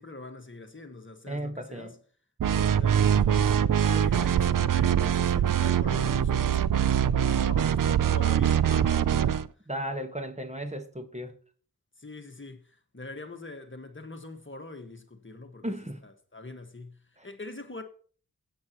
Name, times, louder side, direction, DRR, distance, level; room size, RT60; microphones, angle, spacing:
voice 1, 0.0-1.9 2.5-3.6 3.9-9.5 12.0-15.6 16.0-17.8, left 2 dB, 35° left, 1.6 m, -43 dB
voice 2, 1.3-1.9 9.7-11.3 15.6-16.0 17.2-17.3, right 1 dB, 20° right, 1.5 m, -35 dB
sound 1, 2.4-9.5, right 9 dB, 65° right, 0.5 m, -23 dB
16.5 x 8.2 x 3.0 m
wide cardioid pair, 50°, 35 cm